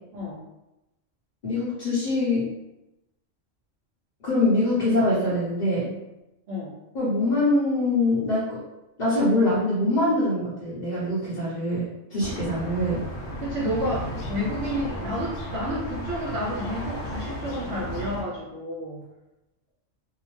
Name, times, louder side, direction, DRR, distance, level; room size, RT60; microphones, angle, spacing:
voice 1, 1.4-2.5 4.2-5.9 6.9-8.6 9.0-13.0, left 1 dB, 45° left, -9 dB, 0.7 m, -24 dB
sound 1, 12.2-18.2, equal, 75° left, 1.0 m, -34 dB
voice 2, 13.4-19.0, equal, 65° right, -6 dB, 0.8 m, -30 dB
2.7 x 2.0 x 3.0 m, 0.95 s
omnidirectional pair, 1.3 m